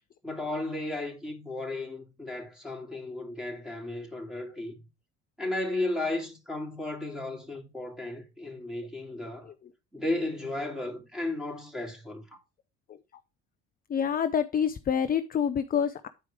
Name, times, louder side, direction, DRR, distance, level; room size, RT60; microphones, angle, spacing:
voice 1, 0.2-4.8 5.4-9.5 9.9-12.4, left 2 dB, ahead, 2.6 m, -34 dB
voice 2, 13.9-16.1, left 8 dB, 25° left, 0.5 m, -27 dB
8.9 x 4.6 x 4.8 m
hypercardioid pair, 75°, 34 cm